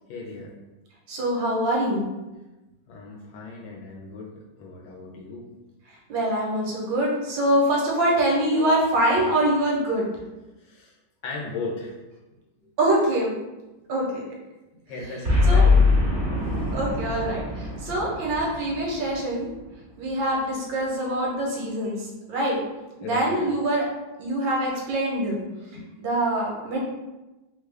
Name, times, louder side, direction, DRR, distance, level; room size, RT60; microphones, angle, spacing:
voice 1, 0.1-0.5 2.9-5.5 10.6-11.0 11.2-11.9 12.6-12.7 14.9-16.0 16.4-16.8 23.0-23.5 25.8-26.0, left 3 dB, 75° left, -2 dB, 1.2 m, -37 dB
voice 2, 1.1-2.0 6.1-10.1 12.8-13.3 13.9-14.2 15.5-15.7 16.7-19.5 20.0-22.6 23.1-23.8 24.2-25.4 26.0-26.8, right 1 dB, 75° right, -3 dB, 1.4 m, -24 dB
Boom, 15.2-19.6, left 3 dB, 40° right, 0.8 m, -22 dB
3.3 x 2.2 x 3.3 m, 1.1 s
omnidirectional pair, 2.2 m